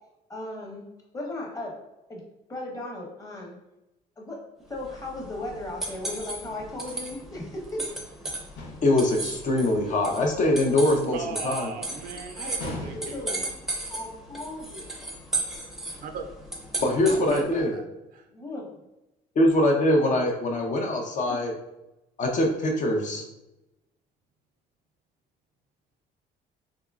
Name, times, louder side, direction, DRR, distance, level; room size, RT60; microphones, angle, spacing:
voice 1, 0.3-0.8 1.1-1.8 2.1-2.2 2.5-3.5 4.2-4.4 4.7-7.8 12.4-13.4 13.9-14.8 16.8-17.7 18.3-18.7 21.3-21.4, left 1 dB, 20° left, -2 dB, 0.9 m, -36 dB
sound 1, 4.7-17.6, right 2 dB, 5° right, 0.6 m, -36 dB
sound 2, 8.6-9.1 12.6-13.4, left 2 dB, 90° left, 0.6 m, -38 dB
voice 2, 8.8-11.2 11.4-11.7 16.8-17.8 19.4-21.5 22.2-23.3, left 1 dB, 45° left, 2 dB, 0.6 m, -23 dB
voice 3, 11.1-13.5 16.0-16.3 17.1-17.8 18.1-18.3, right 5 dB, 55° right, 6 dB, 0.4 m, -38 dB
3.5 x 3.0 x 2.3 m, 0.94 s
cardioid pair, 110°, 17 cm